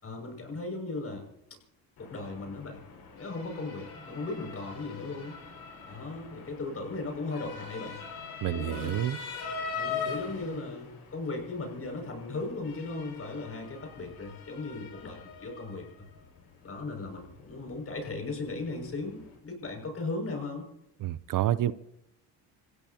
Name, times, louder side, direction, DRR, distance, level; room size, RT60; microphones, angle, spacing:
voice 1, 0.0-1.3 2.0-2.8 3.2-5.4 5.9-8.0 8.4-9.1 9.7-16.0 16.6-20.7, left 3 dB, 35° left, 3 dB, 6.3 m, -37 dB
Motor vehicle (road) / Siren, 2.0-19.4, left 5 dB, 75° left, 6.0 m, -42 dB
voice 2, 8.4-9.2 21.0-21.7, right 12 dB, 55° right, 16 dB, 0.7 m, -28 dB
28.0 x 16.5 x 2.9 m, 0.80 s
cardioid pair, 90°, 39 cm